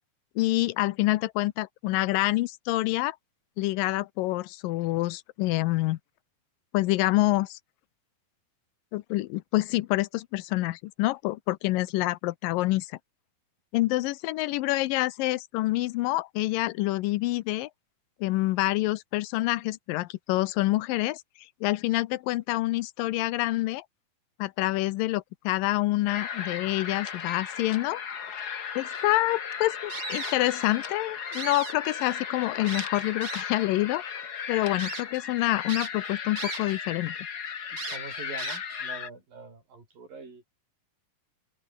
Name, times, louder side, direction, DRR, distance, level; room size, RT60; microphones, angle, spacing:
voice 1, 0.4-3.2 3.6-6.0 6.7-7.6 8.9-12.9 13.7-17.7 18.2-21.2 21.6-23.8 24.4-28.0 28.8-34.0 34.5-37.2, left 18 dB, 80° left, 2.4 m, -27 dB
sound 1, 26.1-39.1, left 7 dB, 50° left, 1.2 m, -36 dB
sound 2, 29.9-30.8 31.2-32.2 32.7-33.7 34.2-34.3 34.8-35.0 35.7-36.9 37.2-37.3 37.8-38.9, right 5 dB, 45° right, 4.5 m, -38 dB
voice 2, 37.7-40.5, right 4 dB, 75° right, 9.0 m, -44 dB
omnidirectional pair, 4.0 m